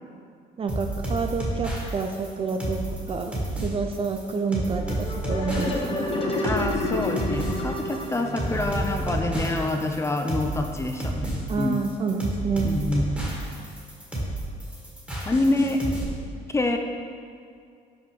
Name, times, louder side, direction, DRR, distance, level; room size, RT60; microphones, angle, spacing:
voice 1, 0.6-6.3 11.5-12.8, right 4 dB, 35° right, 6 dB, 0.5 m, -29 dB
sound 1, 0.7-16.0, right 1 dB, 10° right, 1.8 m, -31 dB
sound 2, 4.8-10.2, left 2 dB, 35° left, 1.1 m, -30 dB
voice 2, 6.4-11.8 12.6-13.1 15.3-15.8 16.5-16.8, left 2 dB, 15° left, 4 dB, 0.5 m, -26 dB
6.1 x 4.8 x 5.2 m, 2.3 s
cardioid pair, 110°, 17 cm